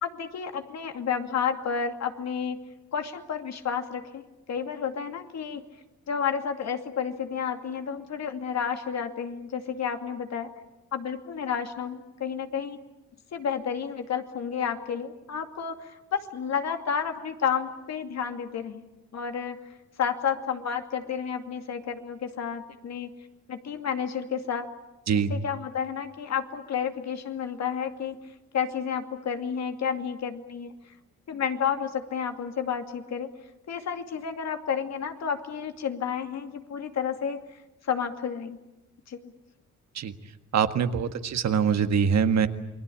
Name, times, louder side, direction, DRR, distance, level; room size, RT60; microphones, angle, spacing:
voice 1, 0.0-2.6 2.9-4.2 4.5-5.6 6.1-10.5 10.9-12.8 13.3-18.8 19.1-19.6 20.0-23.1 23.5-24.7 25.3-28.2 28.5-30.7 31.3-33.3 33.7-37.6 37.9-38.6 39.1-39.3, left 7 dB, 60° left, 6 dB, 2.6 m, -31 dB
voice 2, 40.5-42.5, right 7 dB, 60° right, 9 dB, 1.7 m, -23 dB
28.5 x 21.0 x 8.7 m, 0.98 s
cardioid pair, 90°, 30 cm